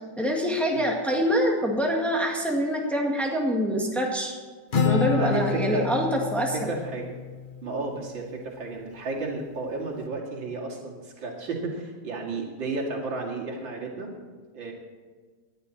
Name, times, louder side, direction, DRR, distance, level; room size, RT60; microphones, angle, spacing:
voice 1, 0.2-4.4 4.8-6.7, equal, ahead, -1 dB, 1.9 m, -25 dB
Acoustic guitar, 4.7-8.4, left 5 dB, 35° left, 0.9 m, -29 dB
voice 2, 5.1-5.9 6.4-7.1 7.6-14.1 14.5-14.7, right 3 dB, 85° right, -1 dB, 3.1 m, -32 dB
19.0 x 11.0 x 4.2 m, 1.4 s
omnidirectional pair, 2.0 m